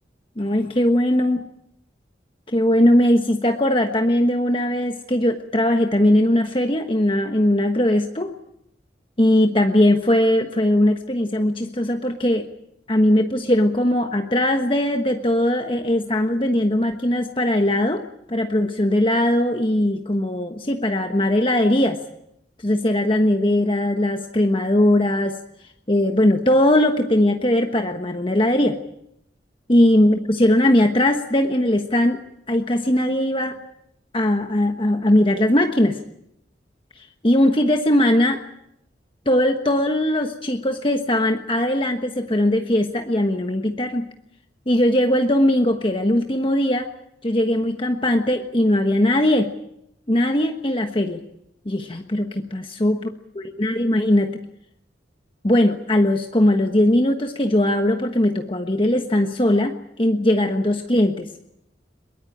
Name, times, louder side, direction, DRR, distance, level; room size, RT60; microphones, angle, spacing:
voice 1, 0.4-1.4 2.5-8.3 9.2-12.5 12.9-18.0 18.3-22.0 22.6-25.4 25.9-28.8 29.7-32.2 32.5-33.6 34.1-36.0 36.9-38.4 39.2-44.1 44.7-46.9 47.2-49.5 50.1-51.2 51.6-53.1 53.4-54.4 55.4-61.3, left 1 dB, 30° left, 5 dB, 1.3 m, -19 dB
22.5 x 21.5 x 8.8 m, 0.78 s
head